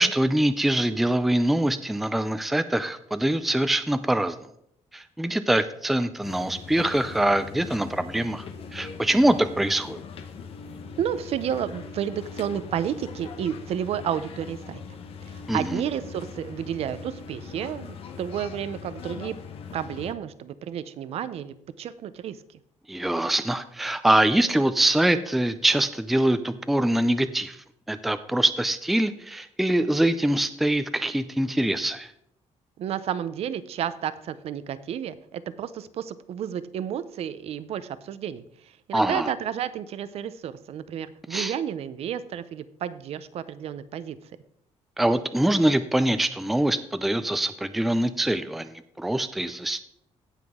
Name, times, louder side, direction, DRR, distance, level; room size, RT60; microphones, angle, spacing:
voice 1, 0.0-4.3 4.9-8.5 8.7-10.0 15.5-15.8 22.9-27.6 27.9-32.1 38.9-39.3 41.3-41.5 45.0-49.8, right 1 dB, ahead, 11 dB, 0.4 m, -24 dB
sound 1, 6.2-20.1, left 5 dB, 55° left, 1.0 m, -41 dB
voice 2, 11.0-14.8 15.3-19.4 19.7-22.4 32.8-44.2, right 9 dB, 60° right, 14 dB, 0.6 m, -31 dB
17.0 x 5.9 x 3.6 m, 0.71 s
cardioid pair, 170°, 12 cm